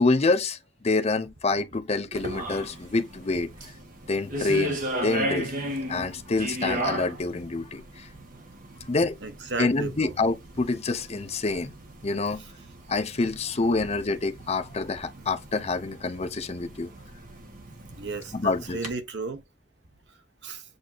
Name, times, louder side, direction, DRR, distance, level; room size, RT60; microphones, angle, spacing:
voice 1, 0.0-3.5 4.1-5.5 5.9-8.1 8.9-9.2 9.6-11.7 12.0-12.4 12.9-16.9 18.3-18.8, left 3 dB, 35° left, 0.7 m, -27 dB
sound 1, 2.1-18.9, right 1 dB, 50° right, 1.4 m, -36 dB
voice 2, 9.2-10.2 12.3-12.5 16.8-16.9 17.9-19.4 20.4-20.6, right 3 dB, 70° right, 1.0 m, -34 dB
7.9 x 2.7 x 2.4 m
head